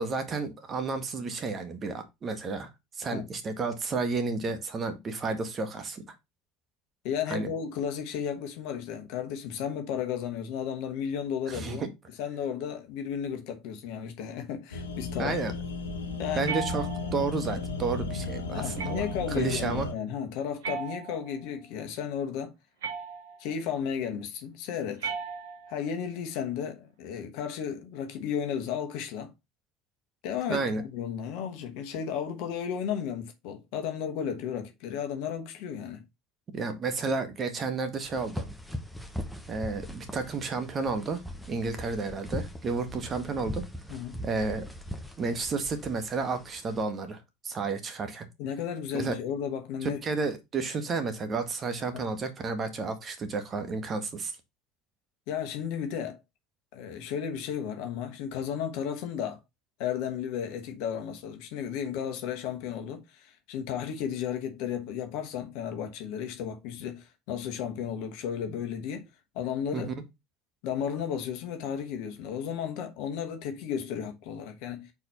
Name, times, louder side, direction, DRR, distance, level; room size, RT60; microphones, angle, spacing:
voice 1, 0.0-2.7 3.0-6.0 7.3-7.5 11.5-11.9 15.2-15.5 16.3-16.9 17.1-19.0 19.3-19.9 30.5-30.8 36.5-38.4 39.5-41.2 41.5-43.6 44.2-44.7 45.2-48.3 48.9-49.1 49.8-54.3 69.7-69.9, right 4 dB, 35° right, 1.7 m, -31 dB
voice 2, 7.0-11.8 12.2-15.3 16.2-16.5 18.5-22.5 23.4-25.1 25.7-29.3 30.2-30.6 30.9-36.0 43.9-44.2 48.4-50.0 51.9-52.1 55.3-56.2 56.7-59.4 59.8-69.1 69.3-69.9 70.6-74.9, left 8 dB, 60° left, 1.2 m, -34 dB
sound 1, 14.7-19.9, left 3 dB, 80° left, 0.9 m, -34 dB
sound 2, 16.4-17.3 18.8-19.3 20.6-21.5 22.8-23.5 25.0-25.9, right 6 dB, 75° right, 1.5 m, -37 dB
sound 3, 38.1-46.8, left 1 dB, ahead, 1.3 m, -40 dB
4.8 x 4.3 x 5.6 m
figure-of-eight pair, 65°, 0 cm